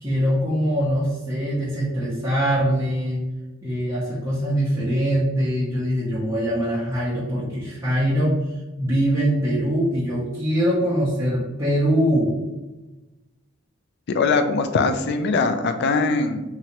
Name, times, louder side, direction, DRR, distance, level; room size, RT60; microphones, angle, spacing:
voice 1, 0.0-3.2 3.6-8.4 8.8-12.4, equal, 15° right, -8 dB, 0.5 m, -22 dB
voice 2, 14.1-16.4, left 4 dB, 55° left, 8 dB, 0.3 m, -21 dB
3.0 x 2.5 x 2.8 m, 1.1 s
head